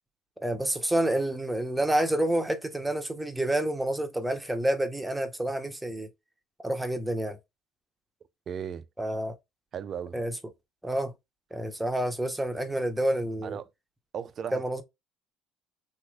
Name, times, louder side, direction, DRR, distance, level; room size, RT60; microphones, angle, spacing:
voice 1, 0.4-6.1 6.6-7.4 9.0-9.3 10.1-10.3 10.8-11.1 11.5-13.6 14.5-14.8, right 1 dB, 5° right, 0.8 m, -28 dB
voice 2, 8.5-8.8 9.7-10.2 13.4-13.6 14.1-14.8, right 8 dB, 40° right, 0.4 m, -36 dB
3.4 x 3.1 x 2.3 m
cardioid pair, 120°, 0 cm